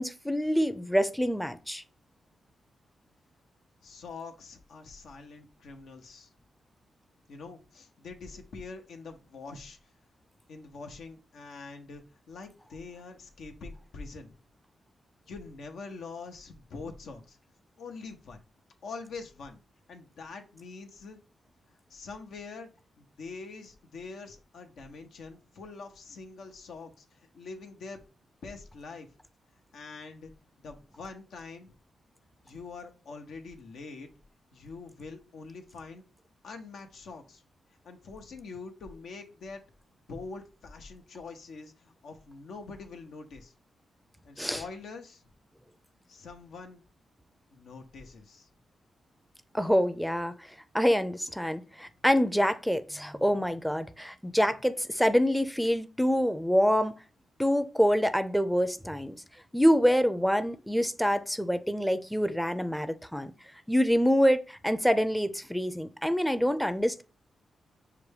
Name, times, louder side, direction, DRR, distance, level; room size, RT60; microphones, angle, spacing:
voice 1, 0.0-1.8 44.4-44.6 49.5-50.3 50.7-57.0 57.4-59.2 59.5-63.3 63.7-67.0, equal, ahead, 0.5 m, -26 dB
voice 2, 3.8-6.3 7.3-9.8 10.5-14.3 15.3-17.4 17.8-18.4 18.8-19.6 19.9-21.2 21.7-22.7 23.0-28.0 28.4-29.1 29.7-30.3 30.6-31.7 32.4-34.1 34.5-36.0 36.4-37.4 37.8-39.6 40.1-43.5 44.2-45.2 46.1-46.8 47.5-48.5, left 4 dB, 80° left, 0.7 m, -44 dB
5.8 x 2.2 x 3.3 m
cardioid pair, 55°, 0 cm